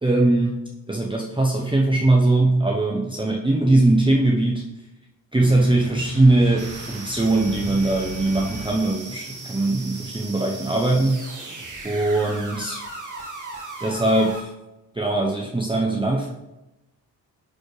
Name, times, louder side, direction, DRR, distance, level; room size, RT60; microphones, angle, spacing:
voice 1, 0.0-4.7 5.3-11.5 11.8-12.8 13.8-14.5 14.9-16.3, right 2 dB, 10° right, -1 dB, 0.9 m, -21 dB
sound 1, 5.4-9.3, right 1 dB, 80° right, 1.7 m, -37 dB
sound 2, 6.6-14.4, right 3 dB, 45° right, 1.7 m, -37 dB
9.4 x 4.2 x 3.3 m, 0.97 s
supercardioid pair, 45°, 42 cm